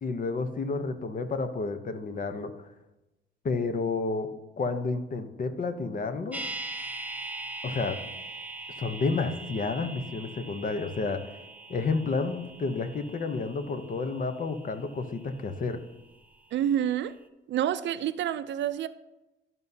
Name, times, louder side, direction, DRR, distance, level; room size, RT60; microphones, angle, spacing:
voice 1, 0.0-2.7 3.4-4.3 4.6-6.4 7.6-8.0 8.8-11.2 11.7-15.8, left 4 dB, 45° left, 0.8 m, -30 dB
sound 1, 6.3-16.4 16.6-16.7, right 2 dB, 5° right, 0.8 m, -42 dB
voice 2, 16.5-17.2 17.5-18.9, right 10 dB, 65° right, 0.5 m, -28 dB
13.0 x 5.4 x 2.7 m
cardioid pair, 90°, 20 cm